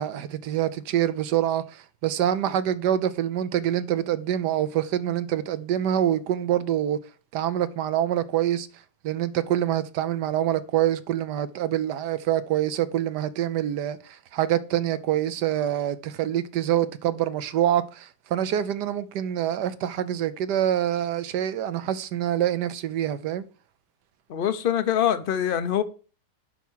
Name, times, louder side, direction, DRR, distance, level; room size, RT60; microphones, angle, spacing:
voice 1, 0.0-7.0 7.3-8.7 9.0-23.4, right 11 dB, 80° right, 1.3 m, -26 dB
voice 2, 24.3-25.8, left 10 dB, 55° left, 0.6 m, -24 dB
8.2 x 5.7 x 6.2 m
omnidirectional pair, 1.8 m